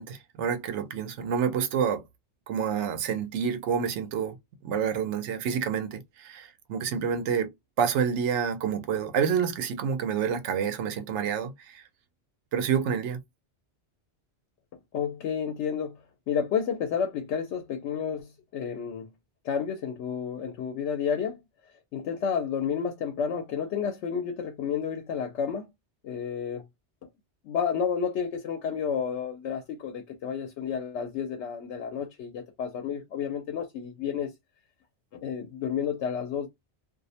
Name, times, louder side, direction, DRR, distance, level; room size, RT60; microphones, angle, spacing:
voice 1, 0.0-2.0 2.5-4.4 4.6-7.5 7.8-11.8 12.5-13.2, right 7 dB, 90° right, 0.9 m, -28 dB
voice 2, 14.9-16.0 16.3-19.1 19.4-21.4 21.9-25.7 26.0-26.6 27.4-34.3 35.1-36.5, left 7 dB, 85° left, 0.9 m, -31 dB
2.4 x 2.0 x 2.7 m
omnidirectional pair, 1.1 m